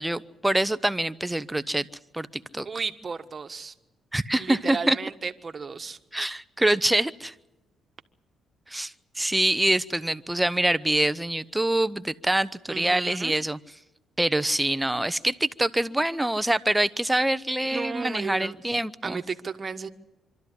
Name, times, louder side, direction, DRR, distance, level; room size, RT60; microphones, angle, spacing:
voice 1, 0.0-1.9 2.1-2.7 4.1-5.0 6.1-7.3 8.7-13.6 14.2-19.2, right 1 dB, 10° right, 14 dB, 0.7 m, -25 dB
voice 2, 2.6-3.7 4.4-6.0 12.7-13.4 17.7-18.6 19.0-19.9, right 5 dB, 35° right, 8 dB, 1.3 m, -34 dB
26.0 x 13.0 x 9.9 m, 1.0 s
cardioid pair, 90°, 0 cm